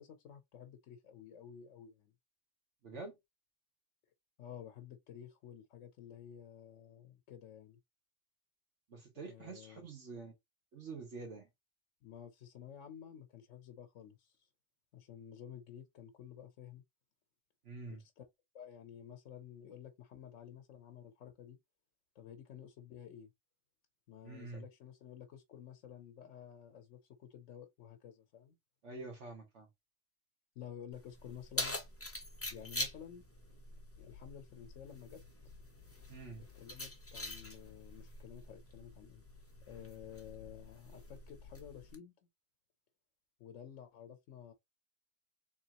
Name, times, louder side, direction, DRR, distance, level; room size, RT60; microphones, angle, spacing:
voice 1, 0.0-2.1 4.4-7.8 9.2-9.9 12.0-14.5 14.9-16.8 17.9-18.2 18.5-21.6 22.1-23.3 24.1-28.6 30.6-31.8 32.5-33.2 34.0-35.2 36.5-39.2 39.7-42.1 43.4-44.5, left 9 dB, 75° left, 1.0 m, -52 dB
voice 2, 2.8-3.1 8.9-10.3 10.7-11.5 17.6-18.0 24.2-24.6 28.8-29.7 36.1-36.4, right 3 dB, 65° right, 1.3 m, -47 dB
Keys jangling, 30.9-41.9, left 1 dB, 15° left, 0.7 m, -45 dB
3.8 x 3.0 x 2.8 m
omnidirectional pair, 1.3 m